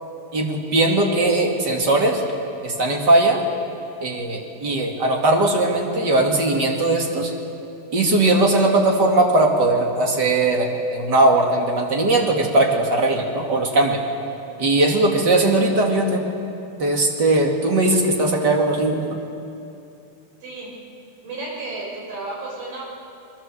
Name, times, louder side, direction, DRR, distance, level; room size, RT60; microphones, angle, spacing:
voice 1, 0.3-2.2 2.6-3.4 4.0-7.3 7.9-14.0 14.6-16.2 16.8-19.2, right 2 dB, 30° right, 1 dB, 2.8 m, -19 dB
voice 2, 20.4-20.7 21.2-22.8, right 2 dB, 75° right, -3 dB, 7.5 m, -32 dB
27.5 x 21.5 x 7.6 m, 2.7 s
omnidirectional pair, 4.0 m